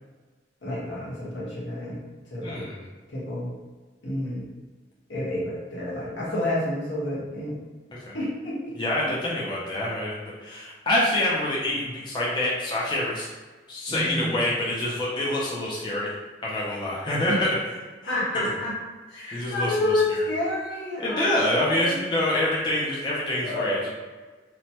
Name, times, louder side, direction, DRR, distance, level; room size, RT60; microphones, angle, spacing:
voice 1, 0.6-2.0 2.3-2.7 3.1-3.5 4.0-4.5 5.1-7.6 8.1-8.7 9.0-9.1 13.9-14.4 17.3-17.4 18.1-18.7 19.1-22.0 22.6-22.7 23.4-23.9, left 1 dB, 90° left, -7 dB, 1.1 m, -29 dB
voice 2, 2.4-2.9 8.1-8.2 8.8-13.3 13.7-17.5 18.0-18.1 19.3-19.8 20.1-20.2 21.0-23.9, left 1 dB, 25° left, -6 dB, 0.4 m, -26 dB
3.0 x 2.1 x 2.8 m, 1.3 s
head